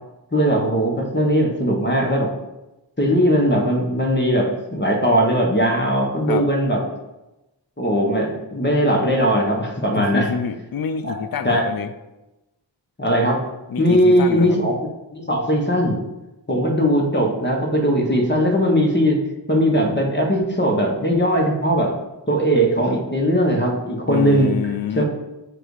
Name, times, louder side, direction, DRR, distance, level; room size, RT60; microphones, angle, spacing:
voice 1, 0.3-2.3 3.0-6.8 7.8-10.3 11.1-11.2 11.4-11.6 13.0-13.4 13.8-14.8 15.1-16.0 16.5-19.2 19.5-21.9 22.3-24.5 24.9-25.0, equal, 25° left, 0 dB, 1.3 m, -19 dB
voice 2, 9.9-11.9 13.7-14.6 24.1-25.0, left 7 dB, 55° left, 10 dB, 0.5 m, -27 dB
7.6 x 2.6 x 4.8 m, 1.0 s
wide cardioid pair, 60°, 44 cm